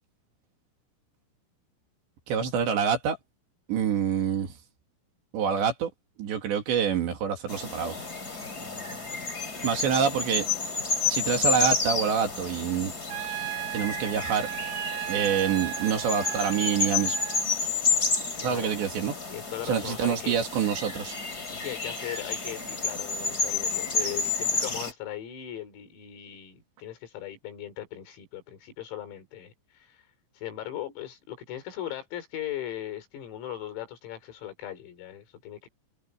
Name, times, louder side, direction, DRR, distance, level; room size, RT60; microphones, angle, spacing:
voice 1, 2.3-3.2 3.7-4.5 5.3-5.9 6.2-8.0 9.6-10.5 11.1-12.9 13.7-14.5 15.1-17.2 18.4-19.1 19.7-21.1, right 7 dB, 60° right, 4.5 m, -26 dB
sound 1, 7.5-24.9, left 4 dB, 20° left, 3.3 m, -30 dB
voice 2, 8.6-9.2 13.8-14.1 16.2-16.8 18.4-18.7 19.3-20.4 21.5-30.0 30.4-35.7, left 11 dB, 85° left, 6.9 m, -39 dB
Trumpet, 13.1-17.4, right 17 dB, 80° right, 3.5 m, -35 dB
omnidirectional pair, 6.0 m